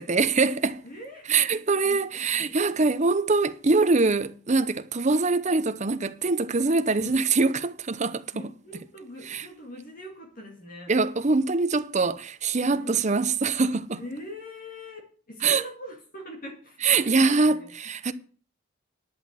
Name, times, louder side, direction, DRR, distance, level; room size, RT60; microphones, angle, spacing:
voice 1, 0.0-0.8 1.3-8.2 9.3-9.5 10.9-14.0 15.4-15.6 16.8-18.1, right 4 dB, 35° right, 0.8 m, -23 dB
voice 2, 0.8-2.8 6.9-7.1 8.3-10.9 12.7-13.1 13.9-17.7, left 1 dB, 45° left, 2.2 m, -42 dB
11.0 x 6.2 x 8.2 m
head